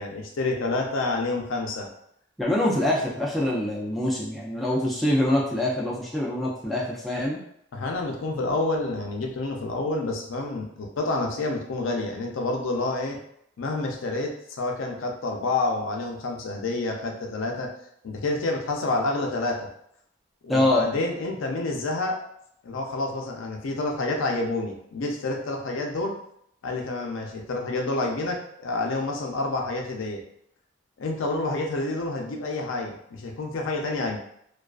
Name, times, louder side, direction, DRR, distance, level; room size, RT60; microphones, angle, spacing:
voice 1, 0.0-1.9 7.7-13.2 13.6-17.7 18.0-19.7 20.4-22.2 22.6-26.2 26.6-30.2 31.0-34.2, left 2 dB, 75° left, 1 dB, 0.4 m, -28 dB
voice 2, 2.4-7.4 20.5-20.9, left 1 dB, ahead, -5 dB, 0.3 m, -24 dB
2.3 x 2.3 x 2.3 m, 0.71 s
head